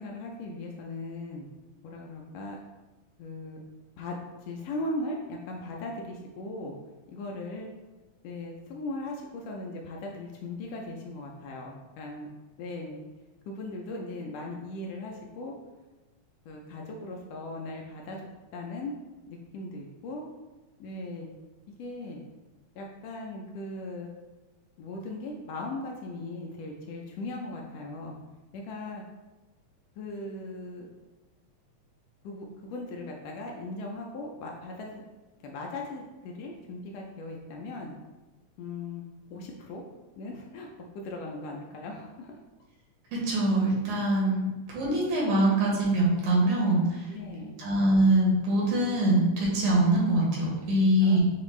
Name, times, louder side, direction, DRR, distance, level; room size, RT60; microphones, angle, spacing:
voice 1, 0.0-1.5 1.8-2.6 3.2-3.6 4.0-4.2 4.5-6.7 7.1-7.7 8.2-12.3 12.6-13.0 13.5-15.5 16.5-18.2 18.5-18.9 19.3-20.2 20.8-21.3 21.8-22.2 22.7-24.1 24.8-28.1 28.5-29.0 30.0-30.9 32.2-35.0 35.4-37.9 38.6-39.0 39.3-39.8 40.2-40.7 40.9-42.4 47.1-47.6 50.7-51.2, left 2 dB, 80° left, 0 dB, 1.4 m, -38 dB
voice 2, 43.1-47.1 47.6-51.2, right 1 dB, 85° right, -4 dB, 2.7 m, -24 dB
6.8 x 2.4 x 3.1 m, 1.1 s
omnidirectional pair, 3.4 m